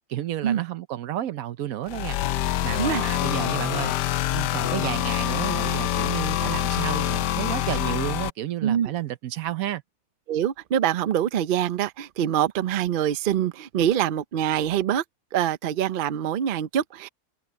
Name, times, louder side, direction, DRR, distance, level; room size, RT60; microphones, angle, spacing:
voice 1, 0.1-2.2 2.6-4.0 4.3-9.8, right 12 dB, 65° right, 1.1 m, -31 dB
sound 1, 1.9-8.3, left 13 dB, 85° left, 1.2 m, -26 dB
voice 2, 10.3-15.0 15.3-17.1, right 10 dB, 85° right, 0.4 m, -24 dB
omnidirectional pair, 1.7 m